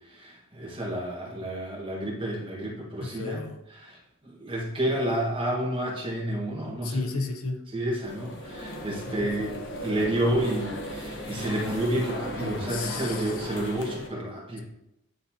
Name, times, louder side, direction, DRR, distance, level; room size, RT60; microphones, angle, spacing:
voice 1, 0.1-3.4 3.7-4.0 4.2-7.0 7.7-14.6, right 1 dB, 25° right, -3 dB, 1.5 m, -30 dB
voice 2, 3.0-3.6 6.8-7.6 9.2-9.5 12.7-13.3, left 3 dB, 80° left, 5 dB, 0.7 m, -33 dB
sound 1, 8.0-14.1, equal, 55° left, 1.0 m, -36 dB
9.4 x 4.1 x 2.9 m, 0.87 s
head